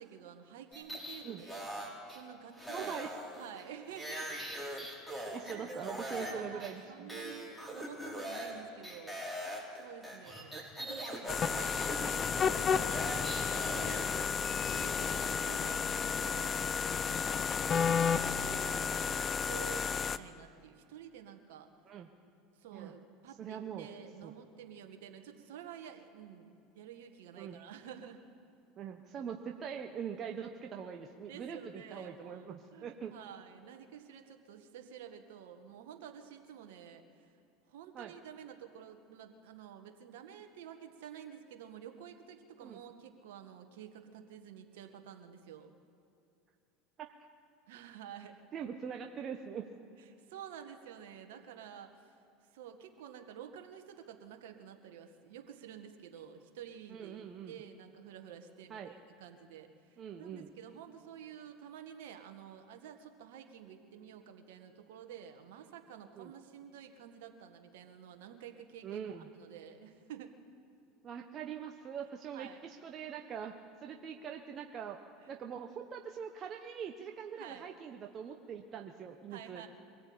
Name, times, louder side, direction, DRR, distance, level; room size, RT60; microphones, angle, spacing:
voice 1, 0.0-1.7 2.1-2.9 3.4-4.5 5.1-5.6 6.1-9.2 9.7-14.3 14.7-16.6 17.0-21.7 22.6-28.3 31.2-32.5 32.7-37.3 37.7-45.7 47.7-48.5 50.3-52.1 52.5-70.3 72.3-72.6 77.4-77.7 79.3-79.7, right 9 dB, 75° right, 5 dB, 1.7 m, -50 dB
sound 1, 0.7-2.2 2.6-6.3 6.6-6.7 7.1-8.5 8.8-14.0, equal, 5° left, 5.8 m, -42 dB
voice 2, 2.7-3.1 5.3-7.1 17.5-17.6 21.9-22.1 22.7-22.9 23.4-23.9 24.2-24.3 27.4-27.6 28.8-33.1 37.9-38.1 42.6-42.8 47.0-47.1 48.5-49.7 56.9-57.5 58.7-58.9 60.0-60.5 66.2-66.3 68.8-69.3 71.0-75.0 75.3-79.7, right 7 dB, 40° right, 3 dB, 1.3 m, -43 dB
sound 2, 11.3-20.2, left 6 dB, 35° left, 0.8 m, -32 dB
23.0 x 15.5 x 8.7 m, 2.6 s
hypercardioid pair, 90°, 0 cm